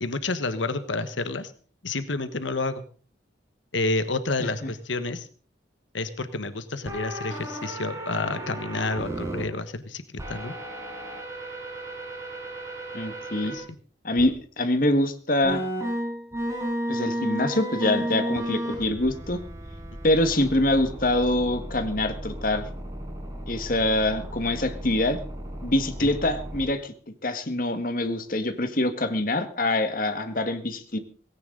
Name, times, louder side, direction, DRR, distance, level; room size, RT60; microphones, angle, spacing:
voice 1, 0.0-1.5 1.8-2.8 3.7-5.3 5.9-10.0 10.3-10.5 13.5-13.6, left 3 dB, 90° left, 11 dB, 1.3 m, -29 dB
voice 2, 4.4-4.7 12.9-13.6 14.0-15.6 16.9-19.4 20.0-22.7 23.5-25.2 25.6-26.9 27.2-31.0, left 1 dB, 45° left, 8 dB, 1.7 m, -25 dB
sound 1, 6.9-9.4 10.2-13.6 14.2-14.3 15.4-26.7, right 1 dB, 15° right, 5.5 m, -34 dB
18.0 x 16.5 x 3.9 m, 0.41 s
head